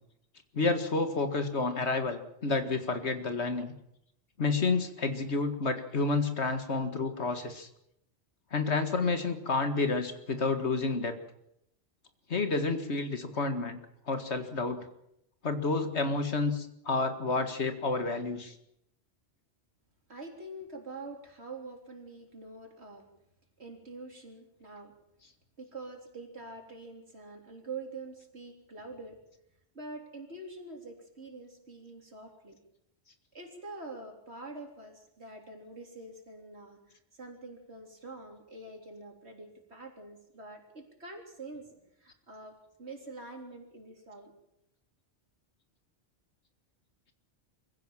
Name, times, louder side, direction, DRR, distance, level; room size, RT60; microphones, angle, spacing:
voice 1, 0.5-3.7 4.4-7.7 8.5-11.1 12.3-13.8 14.1-14.9 15.4-18.5, left 3 dB, 75° left, 8 dB, 2.1 m, -30 dB
voice 2, 20.1-23.1 23.6-24.9 25.6-29.2 29.7-32.6 33.3-36.8 37.1-44.3, right 3 dB, 70° right, 2 dB, 3.9 m, -45 dB
23.5 x 16.0 x 7.4 m, 0.80 s
omnidirectional pair, 1.2 m